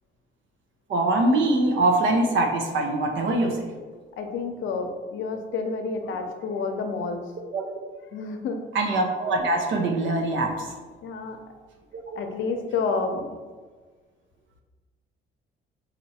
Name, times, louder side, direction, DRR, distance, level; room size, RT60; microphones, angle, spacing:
voice 1, 0.9-3.7 7.5-7.6 8.7-10.7 11.9-12.2, right 2 dB, 75° right, 2 dB, 0.8 m, -23 dB
voice 2, 4.2-7.2 8.1-8.6 11.0-11.4 12.1-13.4, left 4 dB, 75° left, 5 dB, 0.6 m, -29 dB
4.3 x 2.6 x 4.2 m, 1.4 s
cardioid pair, 90°, 20 cm